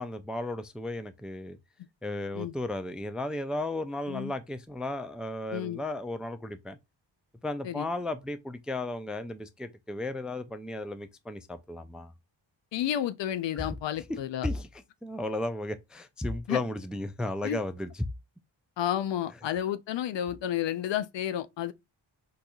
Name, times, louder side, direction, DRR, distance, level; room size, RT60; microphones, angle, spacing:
voice 1, 0.0-1.6 2.0-6.8 7.4-12.1 13.6-13.7 14.1-14.2 14.4-18.0, left 1 dB, ahead, 0.3 m, -34 dB
voice 2, 12.7-14.5 16.5-16.6 17.4-17.6 18.8-21.7, left 11 dB, 65° left, 0.5 m, -31 dB
3.9 x 2.7 x 2.3 m
cardioid pair, 60°, 48 cm